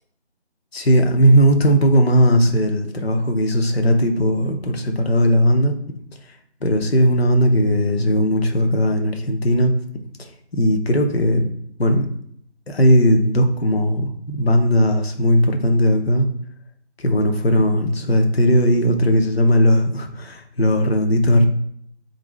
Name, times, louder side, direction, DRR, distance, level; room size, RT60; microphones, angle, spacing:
voice 1, 0.7-5.8 6.3-6.4 6.6-9.8 10.2-11.5 11.8-12.1 12.7-16.3 17.0-21.5, equal, 65° left, 4 dB, 0.7 m, -17 dB
4.3 x 2.6 x 3.1 m, 0.67 s
figure-of-eight pair, 165°, 34 cm